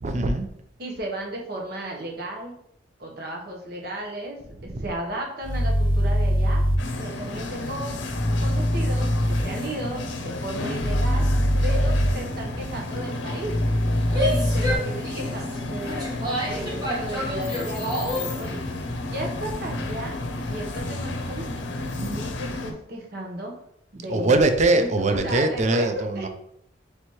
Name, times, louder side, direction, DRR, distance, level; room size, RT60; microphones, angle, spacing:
voice 1, 0.0-0.5 4.7-4.8 12.4-12.5 24.1-26.3, right 2 dB, 40° right, 8 dB, 0.4 m, -22 dB
voice 2, 0.8-2.6 3.0-6.6 7.0-8.0 8.4-11.3 11.6-13.5 14.2-16.1 16.3-18.6 19.0-20.2 20.4-21.4 22.0-23.5 23.9-24.4 24.7-26.3, right 1 dB, 60° right, 0 dB, 1.0 m, -34 dB
sound 1, 5.4-6.8 8.1-9.4 10.8-12.1 13.4-14.7, equal, 25° left, 0.6 m, -22 dB
sound 2, 6.8-22.7, left 2 dB, 80° left, 0.6 m, -32 dB
Female speech woman speaking / Yell, 14.0-18.4, equal, 20° right, 1.1 m, -29 dB
3.3 x 3.0 x 4.5 m, 0.75 s
head